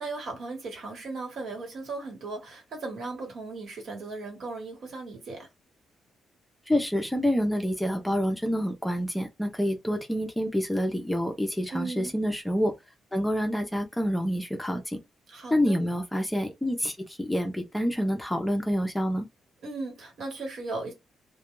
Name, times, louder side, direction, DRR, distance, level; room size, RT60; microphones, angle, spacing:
voice 1, 0.0-5.5 11.7-12.1 15.3-15.8 19.6-20.9, right 3 dB, 60° right, 1.2 m, -37 dB
voice 2, 6.7-12.7 13.1-15.0 15.5-19.3, equal, 5° left, 0.5 m, -27 dB
2.3 x 2.1 x 3.0 m
cardioid pair, 115°, 0 cm